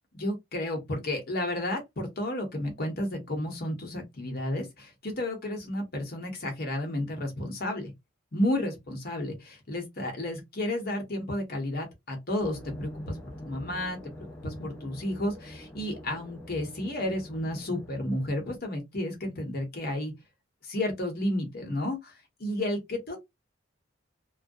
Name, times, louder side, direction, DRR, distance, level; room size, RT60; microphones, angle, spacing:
voice 1, 0.1-7.9 8.3-14.0 14.4-20.1 20.6-23.2, left 1 dB, 50° left, 0.9 m, -32 dB
sound 1, 12.4-18.6, equal, 10° left, 0.4 m, -45 dB
2.3 x 2.1 x 2.6 m
head